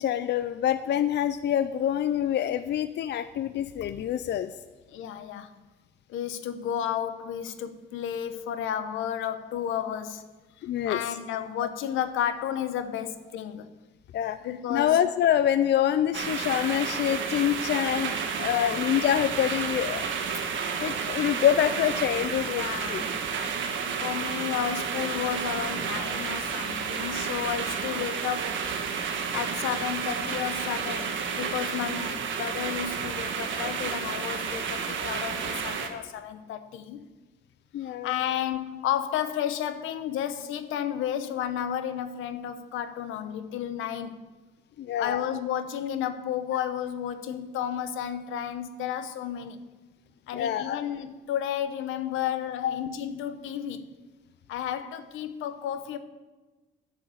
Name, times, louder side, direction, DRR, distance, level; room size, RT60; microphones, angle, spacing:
voice 1, 0.0-4.5 10.6-11.0 14.1-14.4 14.7-20.5 20.8-23.0 37.7-38.2 44.8-45.4 50.3-50.8 52.6-52.8, left 10 dB, 60° left, 0.5 m, -26 dB
voice 2, 4.9-5.5 6.1-10.2 10.9-13.7 14.4-15.0 18.4-18.8 22.5-23.1 24.0-28.5 29.3-37.1 37.8-44.3 45.0-49.6 50.3-53.9 54.5-56.0, left 9 dB, 90° left, 1.0 m, -32 dB
sound 1, 16.1-35.9, right 6 dB, 70° right, 1.6 m, -31 dB
10.5 x 6.5 x 8.5 m
cardioid pair, 90°, 20 cm